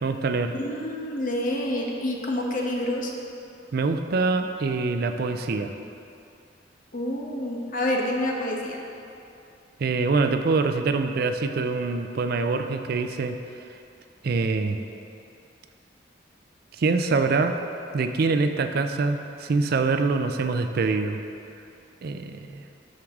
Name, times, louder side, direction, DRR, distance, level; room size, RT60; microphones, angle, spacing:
voice 1, 0.0-0.6 3.7-5.7 9.8-13.4 14.2-14.8 16.8-17.6 17.9-21.2 22.0-22.6, right 4 dB, 60° right, 7 dB, 0.4 m, -24 dB
voice 2, 0.6-3.1 6.9-8.8, left 1 dB, 50° left, 0 dB, 1.0 m, -28 dB
13.0 x 4.7 x 3.6 m, 2.6 s
head